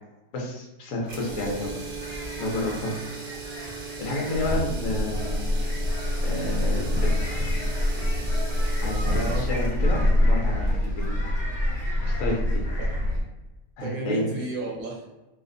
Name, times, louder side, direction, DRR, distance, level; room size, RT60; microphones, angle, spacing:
voice 1, 0.3-1.7 2.4-3.0 4.0-5.4 6.2-7.1 8.8-9.0 9.4-10.0 10.3-11.1 12.1-12.6 13.8-14.2, left 1 dB, 70° left, -2 dB, 1.0 m, -30 dB
sound 1, 1.0-11.1, right 4 dB, 90° right, 0.3 m, -38 dB
voice 2, 1.2-1.8 9.0-9.5 12.8-12.9 13.8-15.1, right 2 dB, 70° right, -3 dB, 1.1 m, -33 dB
sound 2, 2.0-13.2, equal, 35° left, 0.6 m, -41 dB
sound 3, 4.3-13.2, left 1 dB, 50° right, 1.1 m, -25 dB
2.8 x 2.1 x 2.5 m, 1.1 s
omnidirectional pair, 1.6 m